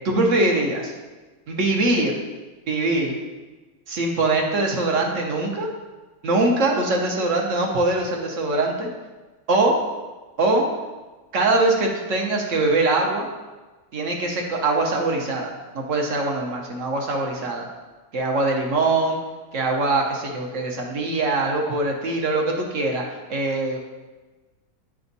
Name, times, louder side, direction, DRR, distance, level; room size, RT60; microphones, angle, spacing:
voice 1, 0.0-0.9 1.5-2.1 2.7-3.2 3.9-5.7 6.2-8.9 9.5-9.7 10.4-10.6 11.3-13.3 13.9-15.5 15.7-17.7 18.1-19.2 19.5-23.0 23.3-23.8, right 2 dB, 60° right, 0 dB, 1.2 m, -22 dB
9.0 x 3.5 x 4.0 m, 1.2 s
omnidirectional pair, 1.6 m